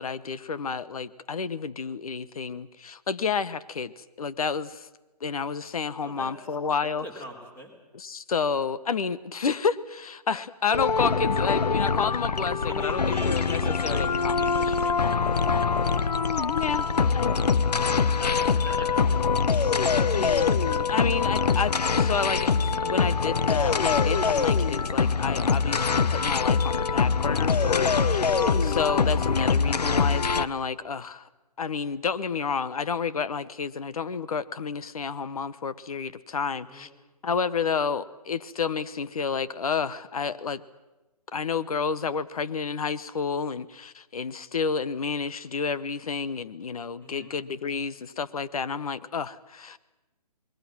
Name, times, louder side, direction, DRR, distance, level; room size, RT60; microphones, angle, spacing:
voice 1, 0.0-4.9 5.2-7.0 7.9-14.7 16.5-17.4 20.1-20.6 20.9-28.2 28.5-31.3 31.6-36.9 37.2-40.6 41.3-49.8, left 5 dB, 65° left, 15 dB, 1.2 m, -30 dB
voice 2, 6.0-6.3 7.0-7.7 12.7-15.3 16.7-17.4 18.1-19.3 27.6-28.0 36.6-36.9 47.0-47.3, left 1 dB, 10° left, 4 dB, 3.7 m, -41 dB
sound 1, 10.7-30.5, left 5 dB, 80° left, 0.9 m, -24 dB
29.0 x 21.0 x 6.2 m, 1.1 s
hypercardioid pair, 150°, 20 cm